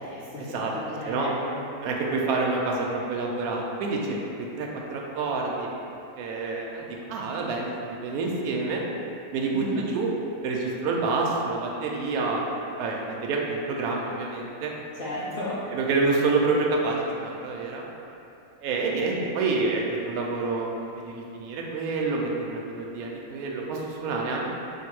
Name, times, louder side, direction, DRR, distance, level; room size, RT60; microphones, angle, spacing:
voice 1, 0.0-1.6 9.5-9.8 14.9-15.7, left 1 dB, 70° left, -7 dB, 0.5 m, -34 dB
voice 2, 1.8-5.7 6.2-8.8 9.3-10.1 10.4-12.4 12.8-14.7 15.7-17.8 18.6-24.5, right 3 dB, 80° right, -2 dB, 1.0 m, -28 dB
3.6 x 2.5 x 4.6 m, 2.7 s
omnidirectional pair, 1.6 m